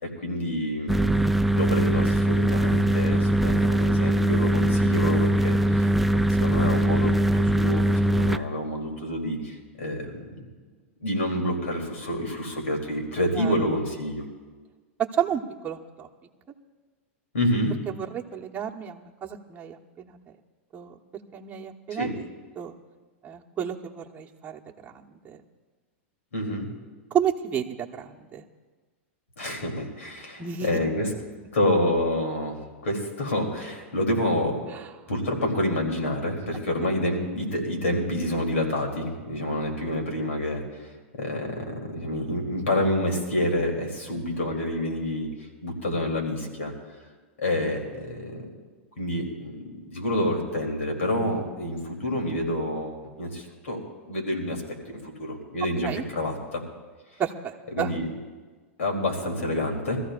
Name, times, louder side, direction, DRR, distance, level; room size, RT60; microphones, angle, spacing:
voice 1, 0.0-10.5 11.0-14.2 17.3-17.7 21.9-22.1 26.3-26.7 29.4-31.1 31.5-34.6 35.1-45.3 45.6-46.7 47.4-48.5 49.0-54.6 54.9-56.6 57.7-58.1 58.8-60.0, left 1 dB, 90° left, 2 dB, 3.2 m, -28 dB
sound 1, 0.9-8.4, right 1 dB, ahead, 0.4 m, -22 dB
voice 2, 15.0-16.1 17.9-20.2 20.7-20.9 21.3-22.1 22.6-22.7 23.2-25.4 27.1-28.4 30.4-30.7 55.8-56.0 57.2-57.9, right 9 dB, 20° right, 0 dB, 1.1 m, -31 dB
24.0 x 14.0 x 2.5 m, 1.4 s
hypercardioid pair, 120°, 7 cm